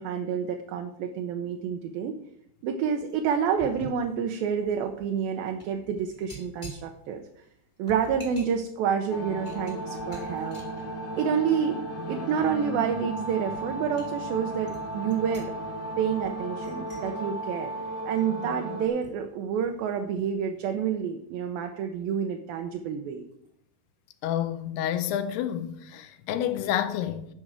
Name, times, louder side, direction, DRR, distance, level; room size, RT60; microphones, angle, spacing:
voice 1, 0.0-2.2 2.6-7.2 7.8-10.6 11.2-11.8 12.1-15.5 16.0-17.7 18.1-23.2, right 7 dB, 75° right, 2.4 m, -28 dB
sound 1, 2.9-11.8 12.2-12.4 13.1-13.2 13.5-14.1 14.7-18.6 19.0-20.4 20.7-20.9, right 1 dB, 20° left, 1.4 m, -48 dB
sound 2, 9.1-18.9, right 1 dB, 55° left, 3.2 m, -35 dB
voice 2, 24.2-27.3, left 10 dB, 85° left, 2.8 m, -29 dB
11.0 x 5.2 x 7.4 m
omnidirectional pair, 4.5 m